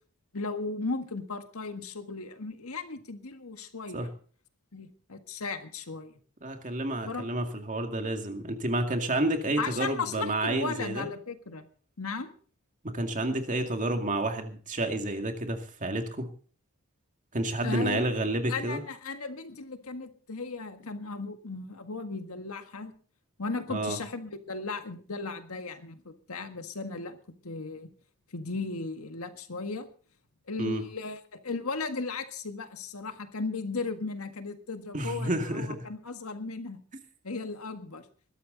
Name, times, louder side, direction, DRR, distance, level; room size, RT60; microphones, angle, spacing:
voice 1, 0.3-4.1 4.7-6.2 7.0-7.3 9.6-11.7 12.0-12.3 17.6-18.0 18.5-22.9 23.4-27.9 28.3-29.9 30.5-36.8 37.2-38.1, left 4 dB, 85° left, 8 dB, 1.7 m, -36 dB
voice 2, 6.4-11.1 12.8-16.3 17.3-18.8 23.7-24.0 30.6-30.8 34.9-35.8, right 1 dB, 35° right, 5 dB, 2.3 m, -30 dB
21.5 x 12.5 x 4.0 m, 0.42 s
head